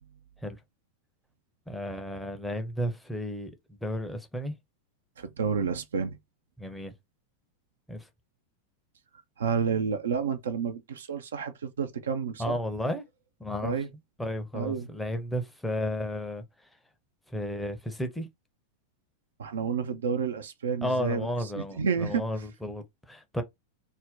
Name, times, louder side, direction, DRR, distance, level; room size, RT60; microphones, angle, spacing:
voice 1, 1.7-4.6 6.6-6.9 7.9-8.1 12.4-13.0 13.4-13.8 14.2-16.7 17.3-18.3 20.8-23.4, equal, 5° left, 0.6 m, -33 dB
voice 2, 5.2-6.2 9.4-12.6 13.6-13.9 14.5-14.9 19.4-21.3 21.5-22.2, right 6 dB, 65° right, 0.4 m, -30 dB
2.5 x 2.1 x 3.6 m
figure-of-eight pair, 90°, 0 cm